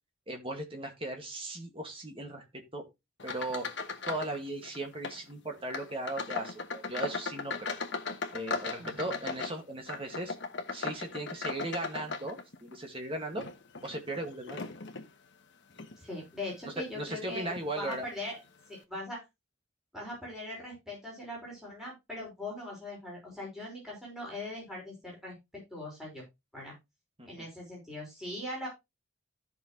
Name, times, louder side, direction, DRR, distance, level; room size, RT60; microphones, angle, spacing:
voice 1, 0.3-2.8 3.2-3.7 4.1-7.7 8.3-10.3 10.7-13.4 13.8-14.6 16.8-18.1 27.2-27.5, right 2 dB, 25° right, 3 dB, 2.0 m, -37 dB
sound 1, 3.2-4.4 4.6-5.2 5.7-12.8 13.3-15.1 15.7-16.0 16.5-16.6 17.5-17.6 17.9-18.1, left 4 dB, 55° left, 1.2 m, -38 dB
voice 2, 15.9-18.4 18.7-19.2 19.9-25.3 25.7-26.2 26.5-26.7 27.3-28.7, left 1 dB, ahead, -4 dB, 5.1 m, -40 dB
13.5 x 6.1 x 3.1 m, 0.22 s
head